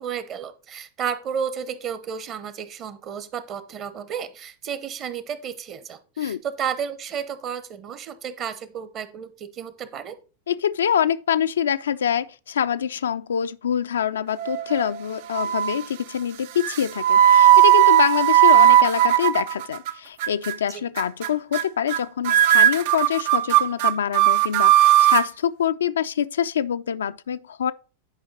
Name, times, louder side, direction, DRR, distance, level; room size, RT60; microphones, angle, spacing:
voice 1, 0.0-10.2, right 7 dB, 30° right, 0.9 m, -32 dB
voice 2, 10.5-27.7, left 9 dB, 65° left, 0.3 m, -25 dB
sound 1, 14.4-15.0 15.3-15.8 16.6-19.9 20.2-20.6 21.0-21.3 21.5-21.6 21.9-22.0 22.3-25.3, right 12 dB, 50° right, 0.4 m, -17 dB
9.7 x 5.0 x 4.0 m
figure-of-eight pair, 90°, 0 cm